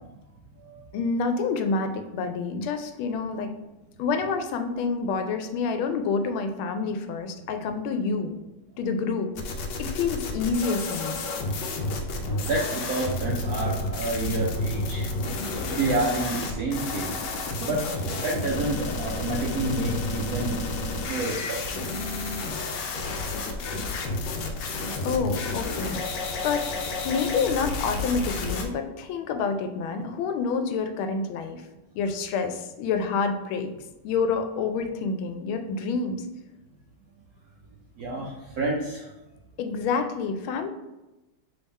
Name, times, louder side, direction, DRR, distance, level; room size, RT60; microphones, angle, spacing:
voice 1, 0.9-3.5 4.0-8.4 8.8-9.3 9.8-11.2 25.0-26.0 26.4-26.7 27.0-31.6 31.9-33.7 34.0-36.2 39.6-40.7, left 5 dB, 85° left, 7 dB, 1.4 m, -28 dB
sound 1, 9.4-28.7, left 2 dB, 70° left, 1.1 m, -31 dB
voice 2, 12.4-15.1 15.6-17.2 17.6-20.6 21.1-21.8 38.0-39.0, right 2 dB, 75° right, -2 dB, 0.8 m, -29 dB
3.5 x 3.5 x 4.1 m, 1.0 s
omnidirectional pair, 2.2 m